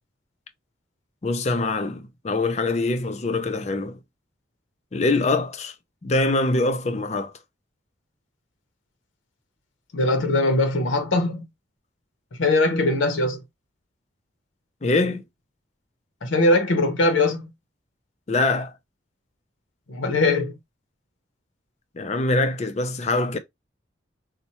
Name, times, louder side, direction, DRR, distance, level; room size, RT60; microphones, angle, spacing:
voice 1, 1.2-4.0 4.9-5.7 6.0-7.3 14.8-15.2 18.3-18.7 22.0-23.4, left 2 dB, 35° left, 0.4 m, -23 dB
voice 2, 9.9-11.4 12.4-13.4 16.2-17.5 19.9-20.5, left 2 dB, 90° left, 0.7 m, -21 dB
4.3 x 2.1 x 2.8 m
head